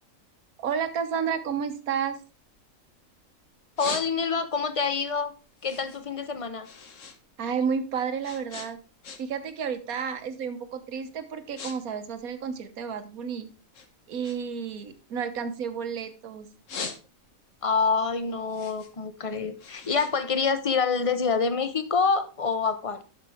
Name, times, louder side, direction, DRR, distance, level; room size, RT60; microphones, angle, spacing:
voice 1, 0.6-2.2 7.4-8.8 9.2-13.5 14.1-16.5, right 7 dB, 85° right, 10 dB, 1.5 m, -31 dB
sound 1, 2.0-3.1 3.5-4.6 5.0-7.2 7.5-9.5 9.8-10.1 10.7-10.9 11.2-11.8 12.0-13.3 13.7-16.1 16.4-17.5 17.9-21.0, left 5 dB, 65° left, 1.5 m, -41 dB
voice 2, 3.8-5.3 5.6-6.7 17.6-23.0, left 5 dB, 30° left, 10 dB, 0.8 m, -26 dB
10.5 x 6.6 x 3.6 m, 0.35 s
omnidirectional pair, 1.5 m